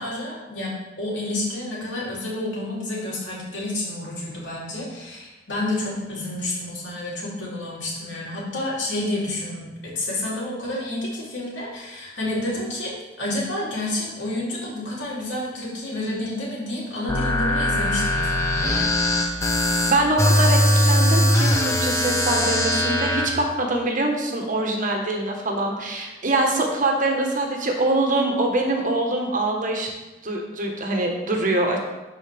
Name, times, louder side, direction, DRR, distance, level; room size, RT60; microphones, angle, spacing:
voice 1, 0.0-18.9, left 1 dB, 85° left, -6 dB, 3.1 m, -29 dB
sound 1, 17.1-23.3, left 1 dB, 15° left, 0.9 m, -20 dB
voice 2, 19.9-29.9 30.2-31.8, right 2 dB, 45° right, 1 dB, 1.3 m, -24 dB
12.5 x 4.8 x 3.5 m, 1.1 s
head